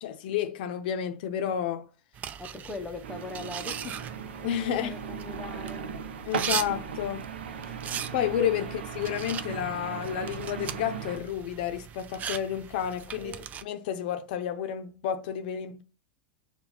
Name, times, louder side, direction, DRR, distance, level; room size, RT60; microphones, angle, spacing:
voice 1, 0.0-1.9 4.4-5.0 6.3-7.3 8.1-13.3 13.6-15.8, left 9 dB, 65° left, 0.5 m, -31 dB
sound 1, 2.1-13.6, right 9 dB, 30° right, 0.3 m, -39 dB
voice 2, 2.4-4.0 4.6-6.0 8.6-8.7 13.2-13.5, left 2 dB, 10° left, 0.6 m, -40 dB
sound 2, 3.0-11.2, right 7 dB, 90° right, 0.5 m, -38 dB
5.5 x 2.3 x 2.8 m
hypercardioid pair, 110°, 5 cm